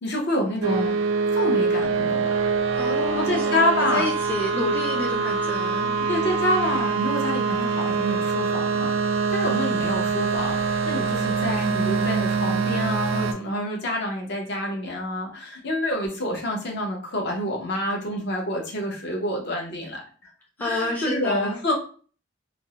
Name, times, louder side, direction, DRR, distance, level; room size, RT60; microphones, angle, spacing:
voice 1, 0.0-0.9 1.3-2.3 3.1-4.0 6.1-10.6 10.9-20.0 20.6-21.7, left 1 dB, 55° left, 0 dB, 0.7 m, -27 dB
sound 1, 0.6-13.3, right 4 dB, 75° right, 0.3 m, -24 dB
voice 2, 2.7-3.5 3.9-5.9 20.6-21.6, left 1 dB, 10° left, -3 dB, 0.3 m, -29 dB
2.5 x 2.0 x 2.8 m, 0.41 s
head